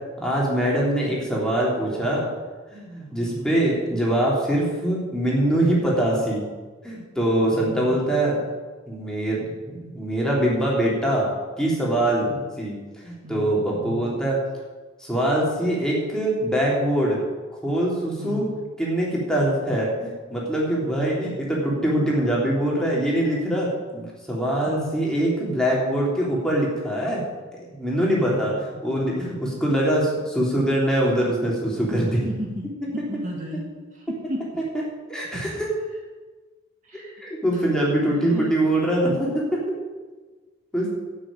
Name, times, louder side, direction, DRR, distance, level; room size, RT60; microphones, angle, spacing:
voice 1, 0.2-2.3 2.7-6.4 6.8-8.4 8.9-11.2 11.6-12.3 12.6-12.7 13.0-14.4 15.0-17.2 17.6-18.4 18.8-23.7 23.9-27.2 27.7-28.5 28.8-32.2 35.1-35.7 37.2-39.8 40.7-40.9, right 1 dB, 5° left, -5 dB, 3.4 m, -23 dB
voice 2, 7.4-8.0 12.2-12.5 13.2-14.1 18.2-18.5 19.4-19.7 20.8-21.2 24.7-25.0 28.2-28.5 29.5-29.7 32.1-32.6 32.9-33.6 33.9-34.6 35.3-35.5 36.8-37.2 37.5-37.9 38.6-38.7, left 1 dB, 40° right, -1 dB, 2.0 m, -35 dB
12.5 x 6.4 x 8.9 m, 1.3 s
head